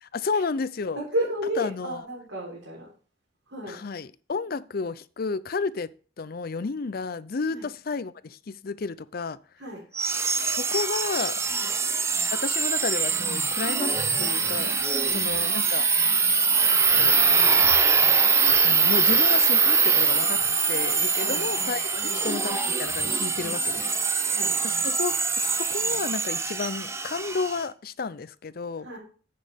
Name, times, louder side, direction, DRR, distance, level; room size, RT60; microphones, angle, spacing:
voice 1, 0.0-1.0 1.6-2.1 3.7-5.9 6.2-9.4 10.4-11.4 12.3-13.9 14.2-14.7 15.1-15.9 16.7-17.2 18.6-20.4 20.7-23.8 24.6-29.0, left 4 dB, 50° left, 0.5 m, -32 dB
voice 2, 0.9-2.9 3.5-3.8 7.5-7.7 9.6-9.8 11.5-11.7 15.0-15.2 15.7-16.7 21.2-22.2 23.4-23.9 24.3-24.6 28.8-29.0, right 1 dB, 80° right, 4.0 m, -34 dB
sound 1, 9.9-27.6, right 5 dB, 15° right, 0.6 m, -23 dB
9.9 x 8.5 x 3.5 m
head